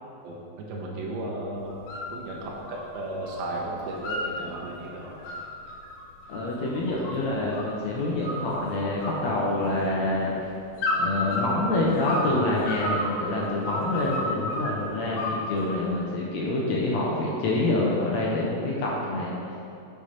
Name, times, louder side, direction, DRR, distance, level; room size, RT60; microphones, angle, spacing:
voice 1, 0.2-1.8 2.1-5.2, right 1 dB, 80° right, -3 dB, 2.9 m, -34 dB
sound 1, 1.7-2.1 2.4-3.4 3.7-4.6 5.0-7.8 8.2-8.7 9.0-10.0 10.8-12.3 12.6-14.7 15.2-15.9, left 1 dB, 90° left, 3.1 m, -31 dB
voice 2, 6.3-10.5 10.9-19.4, left 2 dB, 70° left, -4 dB, 1.7 m, -27 dB
6.8 x 6.5 x 5.8 m, 2.6 s
omnidirectional pair, 4.2 m